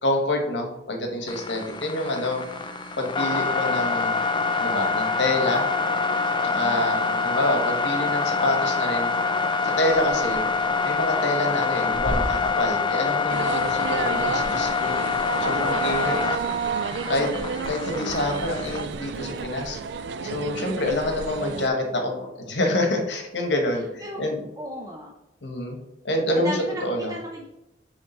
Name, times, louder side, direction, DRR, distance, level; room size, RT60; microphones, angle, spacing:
voice 1, 0.0-2.4 3.0-4.2 4.5-5.7 6.4-9.1 9.6-10.4 10.8-15.0 15.4-16.4 17.1-17.3 17.7-19.8 20.2-24.4 25.4-25.8 26.0-27.1, left 1 dB, 85° left, 3 dB, 1.2 m, -27 dB
sound 1, 1.3-18.8, left 4 dB, 25° left, 0.4 m, -26 dB
voice 2, 6.5-7.3 14.3-14.5 14.8-15.1 16.2-16.3 17.0-18.0 24.0-24.2 24.6-25.1 26.3-27.5, equal, 20° right, -1 dB, 0.6 m, -37 dB
Liquid, 9.9-13.5 13.7-21.3, equal, 55° right, 1.0 m, -39 dB
sound 2, 13.3-21.7, right 6 dB, 70° right, 0.3 m, -31 dB
7.3 x 3.2 x 4.3 m, 0.88 s
head